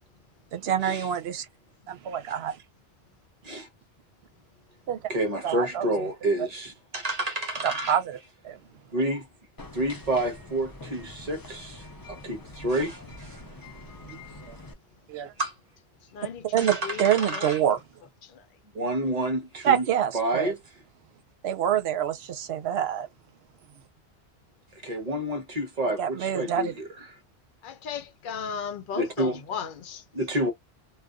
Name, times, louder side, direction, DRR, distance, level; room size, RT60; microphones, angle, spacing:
voice 1, 0.5-1.5 1.9-2.6 4.9-5.0 5.4-5.9 7.6-8.2 8.4-8.6 14.1-14.2 14.5-14.6 15.1-15.3 16.5-17.8 19.6-20.5 21.4-23.1 26.0-26.7, right 9 dB, 80° right, 0.8 m, -26 dB
voice 2, 5.1-8.0 8.9-9.3 9.7-13.4 15.4-15.5 16.6-17.6 18.7-19.9 20.1-20.6 24.8-27.2 28.9-29.4 30.1-30.5, right 1 dB, 45° right, 0.8 m, -29 dB
sound 1, 9.6-14.7, left 2 dB, 30° left, 0.4 m, -45 dB
voice 3, 16.1-17.7 18.2-18.4 27.6-30.0, left 7 dB, 60° left, 0.7 m, -36 dB
2.4 x 2.2 x 2.2 m
omnidirectional pair, 1.1 m